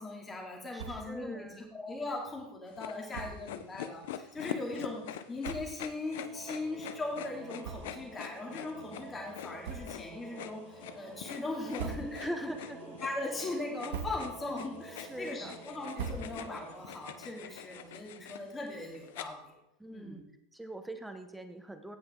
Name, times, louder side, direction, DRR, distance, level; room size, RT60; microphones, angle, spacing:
voice 1, 0.0-5.0 5.3-12.5 13.0-19.5 19.9-20.2, left 2 dB, 15° left, -1 dB, 2.8 m, -39 dB
voice 2, 0.7-1.8 12.2-12.8 15.0-15.6 19.8-20.2 20.5-22.0, right 1 dB, 5° right, 7 dB, 0.9 m, -42 dB
sound 1, 0.7-1.2 1.5-1.6 1.9-2.1 3.1-3.5 4.3-4.4 5.0-5.1 5.4-5.9 6.5-6.6 7.6-8.2 8.6-8.7 9.6-10.2 10.6-11.1 11.5-12.4 12.8-13.2 13.6-14.5 14.9-16.7, right 5 dB, 85° right, 1.7 m, -43 dB
sound 2, 2.7-19.2, left 11 dB, 75° left, 0.8 m, -44 dB
Singing / Musical instrument, 5.9-18.4, right 4 dB, 25° right, 2.4 m, -51 dB
16.5 x 5.7 x 3.8 m, 0.87 s
supercardioid pair, 160°, 0 cm